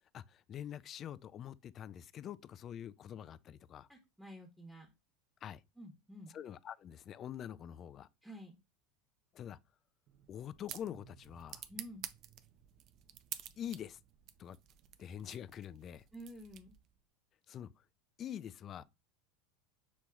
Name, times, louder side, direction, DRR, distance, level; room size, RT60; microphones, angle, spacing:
voice 1, 0.1-3.9 5.4-5.6 6.3-8.1 9.3-9.6 10.3-11.7 13.6-14.0 14.4-14.6 15.0-16.0 17.5-17.8 18.2-18.8, left 10 dB, 40° left, 0.3 m, -45 dB
voice 2, 3.9-4.9 5.8-6.3 8.2-8.6 11.7-12.1 16.1-16.7, equal, ahead, 1.1 m, -50 dB
sound 1, 10.1-17.0, right 11 dB, 50° right, 0.4 m, -51 dB
6.2 x 2.8 x 2.3 m
hypercardioid pair, 95°, 0 cm